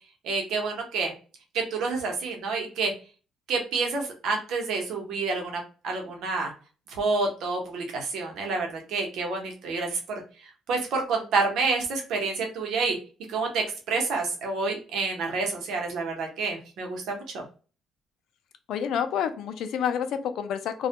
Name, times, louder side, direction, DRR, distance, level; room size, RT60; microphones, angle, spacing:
voice 1, 0.2-1.1 1.5-2.9 3.5-6.5 6.9-13.0 13.3-17.4, right 4 dB, 75° right, 2 dB, 0.8 m, -28 dB
voice 2, 18.7-20.9, left 8 dB, 75° left, 9 dB, 0.3 m, -28 dB
2.3 x 2.1 x 2.8 m, 0.36 s
cardioid pair, 115°, 0 cm